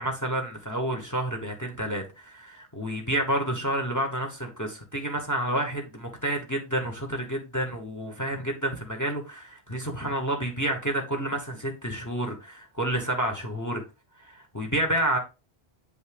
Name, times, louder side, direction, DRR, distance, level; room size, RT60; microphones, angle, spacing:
voice 1, 0.0-13.8 14.2-15.2, right 1 dB, 15° left, 1.1 m, -29 dB
8.1 x 5.3 x 3.4 m
omnidirectional pair, 1.1 m